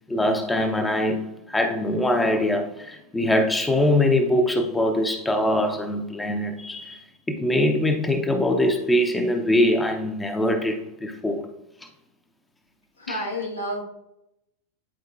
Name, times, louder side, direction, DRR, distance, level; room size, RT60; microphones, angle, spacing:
voice 1, 0.1-7.0 7.3-11.5 13.1-13.2, left 1 dB, 10° left, 0.7 m, -23 dB
voice 2, 13.0-13.8, left 1 dB, 80° left, 1.7 m, -30 dB
10.5 x 4.5 x 2.6 m
figure-of-eight pair, 90°, 0 cm